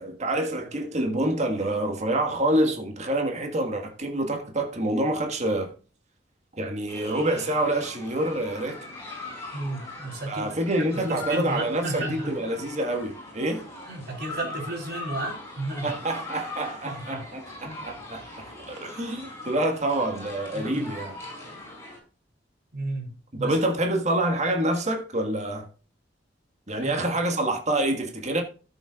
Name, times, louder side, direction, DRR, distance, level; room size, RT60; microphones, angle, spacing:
voice 1, 0.0-5.7 6.6-8.9 10.3-13.6 15.8-21.1 23.4-25.7 26.7-28.4, right 1 dB, 40° right, 1.6 m, -27 dB
sound 1, 6.9-22.0, left 2 dB, 15° left, 5.1 m, -41 dB
voice 2, 9.5-12.4 13.9-16.0 16.8-17.2 17.6-17.9 20.5-20.9 21.5-21.6 22.7-23.6 26.8-27.2, right 2 dB, 65° right, 3.9 m, -34 dB
13.5 x 7.2 x 2.4 m
head